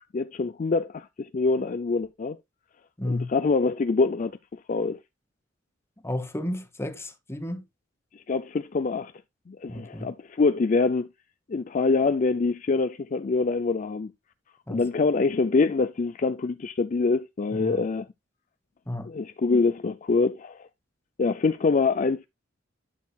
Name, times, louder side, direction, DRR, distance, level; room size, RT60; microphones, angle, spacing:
voice 1, 0.1-2.4 3.1-4.3 4.7-5.0 8.1-9.1 9.5-11.1 11.5-14.1 14.7-18.1 19.1-20.7 21.2-22.3, left 4 dB, 40° left, 0.4 m, -25 dB
voice 2, 3.0-3.3 6.0-7.6 9.7-10.1 14.7-14.8 17.5-17.8 18.9-19.1, left 1 dB, 15° left, 1.2 m, -32 dB
11.5 x 6.6 x 2.3 m
head